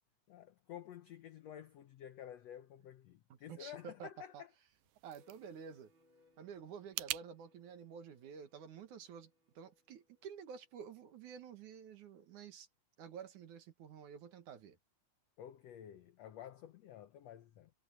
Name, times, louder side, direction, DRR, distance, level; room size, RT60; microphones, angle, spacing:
voice 1, 0.3-4.5 15.4-17.7, left 10 dB, 80° left, 1.5 m, -51 dB
voice 2, 3.3-4.4 5.0-5.9 6.4-12.7 13.0-14.8, right 7 dB, 60° right, 2.8 m, -51 dB
sound 1, 4.6-7.3, right 17 dB, 85° right, 2.5 m, -46 dB
sound 2, 5.1-11.8, left 2 dB, 30° right, 6.9 m, -73 dB
omnidirectional pair, 4.2 m